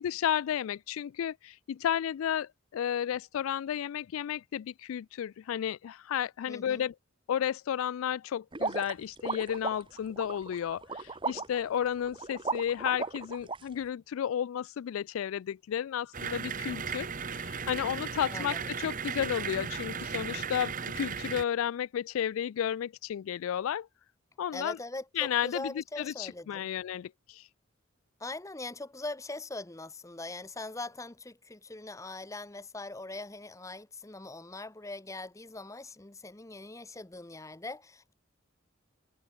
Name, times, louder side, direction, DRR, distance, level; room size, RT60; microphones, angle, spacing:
voice 1, 0.0-6.9 7.3-17.1 17.3-23.9 24.4-24.8 25.2-27.4, left 9 dB, 85° left, 0.3 m, -32 dB
voice 2, 6.5-6.8 18.3-18.7 24.5-26.7 28.2-38.1, left 2 dB, 15° left, 0.9 m, -41 dB
sound 1, 8.5-13.6, right 4 dB, 25° right, 1.2 m, -35 dB
sound 2, 16.1-21.4, right 6 dB, 40° right, 1.5 m, -36 dB
head